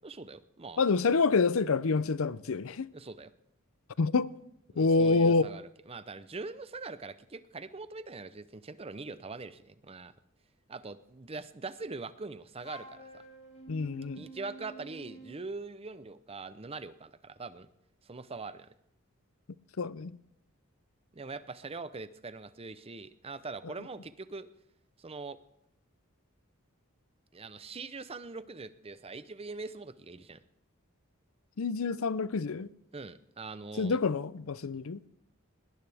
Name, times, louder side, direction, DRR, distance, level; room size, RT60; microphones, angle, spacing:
voice 1, 0.0-0.8 2.9-3.3 4.7-10.1 10.7-13.2 14.2-17.7 18.1-18.7 21.1-24.5 25.0-25.4 27.3-30.4 32.9-34.0, right 3 dB, 30° right, 0.7 m, -42 dB
voice 2, 0.8-2.9 4.0-4.3 4.8-5.4 13.7-14.2 19.8-20.1 31.6-32.7 33.8-35.0, left 4 dB, 75° left, 0.6 m, -27 dB
Wind instrument woodwind instrument, 12.6-15.5, right 2 dB, 30° left, 2.2 m, -49 dB
20.5 x 18.5 x 3.5 m
head